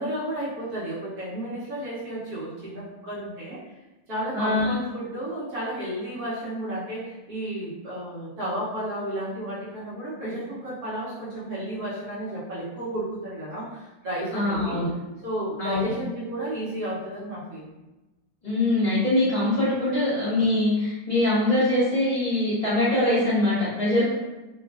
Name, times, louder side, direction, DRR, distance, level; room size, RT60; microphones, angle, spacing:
voice 1, 0.0-3.6 4.1-14.8 15.2-17.8, right 1 dB, 65° right, -9 dB, 1.2 m, -32 dB
voice 2, 4.3-4.8 14.3-14.9 15.6-15.9 18.4-24.1, left 1 dB, 30° left, -13 dB, 1.0 m, -23 dB
3.0 x 2.4 x 2.3 m, 1.1 s
omnidirectional pair, 1.9 m